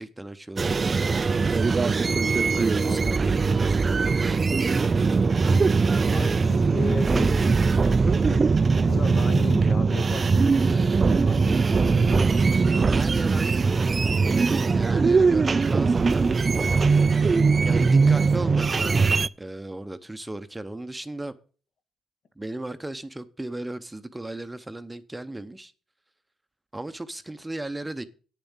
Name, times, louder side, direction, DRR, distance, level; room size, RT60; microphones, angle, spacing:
voice 1, 0.0-1.8 2.5-4.4 12.7-16.3 17.6-21.3 22.4-25.7 26.7-28.0, right 2 dB, 10° right, 0.8 m, -36 dB
sound 1, 0.6-19.3, right 4 dB, 35° right, 0.4 m, -21 dB
voice 2, 2.8-3.2 6.1-10.4 10.7-12.3, left 4 dB, 55° left, 1.7 m, -36 dB
9.1 x 7.1 x 7.2 m
cardioid pair, 90°, 0 cm